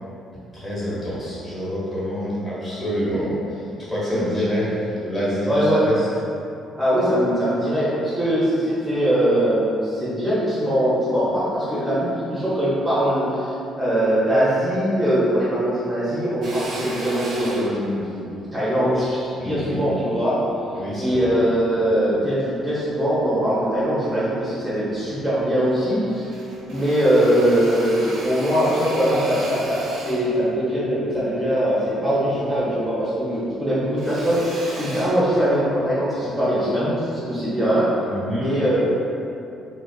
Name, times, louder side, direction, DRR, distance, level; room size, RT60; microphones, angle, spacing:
voice 1, 0.5-6.0 19.4-19.8 20.7-21.4 38.0-38.5, equal, 25° left, -8 dB, 1.1 m, -27 dB
voice 2, 5.5-5.8 6.8-20.4 21.0-26.2 26.6-37.9 38.3-38.8, equal, 10° right, -11 dB, 0.6 m, -21 dB
Drill, 16.4-21.0 21.5-22.7 23.1-24.1 24.4-24.5 24.8-25.8 26.1-32.7 33.0-35.9, right 1 dB, 65° right, 0.5 m, -36 dB
2.4 x 2.2 x 2.3 m, 2.7 s
supercardioid pair, 80°, 0 cm